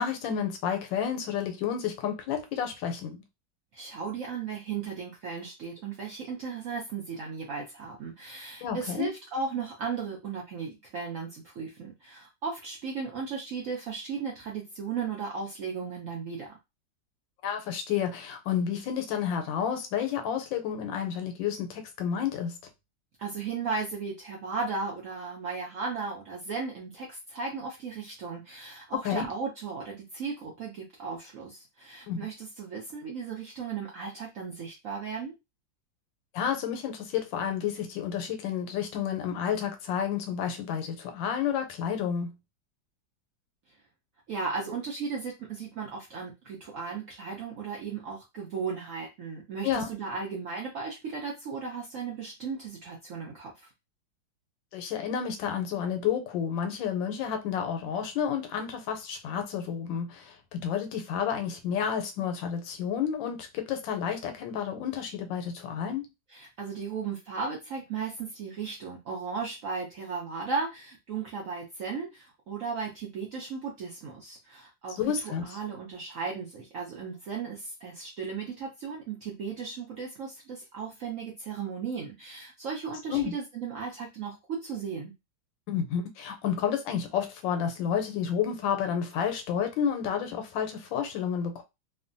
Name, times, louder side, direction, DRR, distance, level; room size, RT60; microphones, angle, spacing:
voice 1, 0.0-3.2 8.6-9.1 17.4-22.6 29.0-29.3 32.1-32.2 36.3-42.3 49.6-49.9 54.7-66.1 75.0-75.5 83.1-83.3 85.7-91.6, left 8 dB, 90° left, 1.3 m, -30 dB
voice 2, 3.7-16.5 23.2-35.3 44.3-53.7 66.3-85.1, right 5 dB, 75° right, 0.7 m, -36 dB
3.2 x 2.2 x 2.5 m
omnidirectional pair, 2.0 m